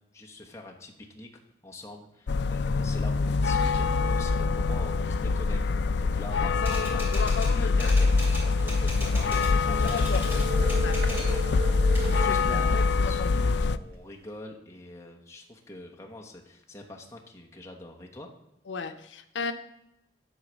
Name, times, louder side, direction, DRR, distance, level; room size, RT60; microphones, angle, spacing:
voice 1, 0.1-18.3, left 1 dB, 15° left, 0 dB, 1.1 m, -44 dB
sound 1, 2.3-13.8, left 4 dB, 65° left, 0.4 m, -24 dB
Typewriter, 6.6-9.5 9.8-11.4 11.7-12.8, equal, 10° right, 2.7 m, -39 dB
sound 2, 10.3-12.4, equal, 55° right, 0.9 m, -34 dB
voice 2, 18.7-19.5, left 4 dB, 90° left, 8 dB, 0.7 m, -34 dB
11.0 x 4.1 x 6.3 m, 0.84 s
head